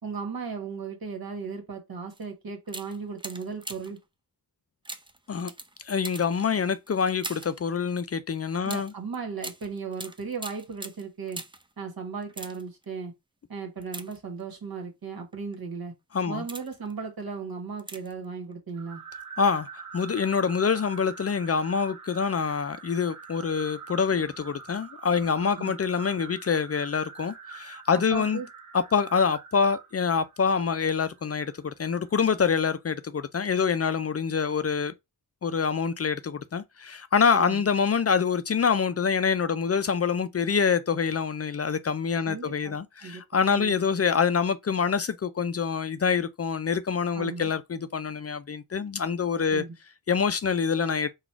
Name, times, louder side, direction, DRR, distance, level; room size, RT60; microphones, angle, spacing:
voice 1, 0.0-4.0 8.6-11.4 11.8-13.1 13.5-15.9 16.3-19.0 25.6-25.7 28.1-28.5 37.3-37.6 42.3-43.8 47.1-47.5 49.5-49.7, right 5 dB, 70° right, 1.5 m, -36 dB
sound 1, 2.1-2.3 2.6-4.0 4.8-7.6 8.6-11.7 12.2-12.8 13.8-14.6 15.3-15.6 16.1-16.9 17.8-18.2 18.5-18.6, right 2 dB, 15° right, 0.5 m, -42 dB
voice 2, 5.8-8.9 16.1-16.4 19.4-28.4 28.7-34.9 35.4-49.6 50.1-51.1, left 6 dB, 40° left, 0.4 m, -26 dB
sound 2, 18.7-32.1, right 5 dB, 50° right, 0.8 m, -45 dB
4.0 x 2.4 x 4.5 m
wide cardioid pair, 75°, 38 cm